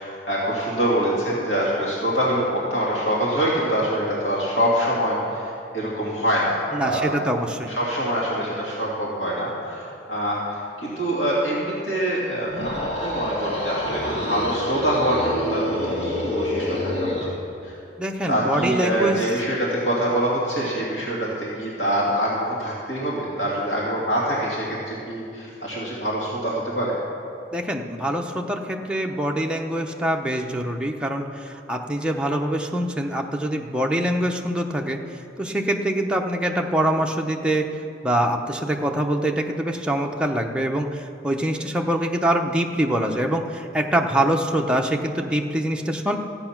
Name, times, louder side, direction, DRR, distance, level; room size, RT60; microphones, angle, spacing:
voice 1, 0.0-7.2 7.7-17.3 17.6-17.8 18.3-26.9, right 1 dB, 85° left, -6 dB, 2.7 m, -25 dB
voice 2, 6.7-7.7 18.0-19.3 27.5-35.0 35.4-37.7 38.0-46.2, right 1 dB, 5° right, 1 dB, 0.7 m, -24 dB
sound 1, 12.5-17.4, left 1 dB, 35° left, 1.7 m, -27 dB
14.0 x 8.9 x 5.9 m, 2.6 s
head